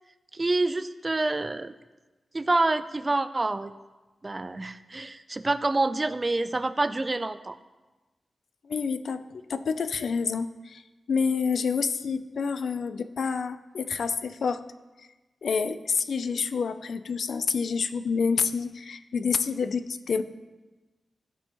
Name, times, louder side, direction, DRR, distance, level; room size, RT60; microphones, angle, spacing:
voice 1, 0.3-1.7 2.3-3.7 4.2-7.6, right 2 dB, 25° right, 12 dB, 0.3 m, -27 dB
voice 2, 8.6-10.8 11.1-14.7 15.4-20.2, left 5 dB, 75° left, 11 dB, 0.4 m, -28 dB
16.0 x 5.4 x 3.0 m, 1.2 s
wide cardioid pair, 145°, 0 cm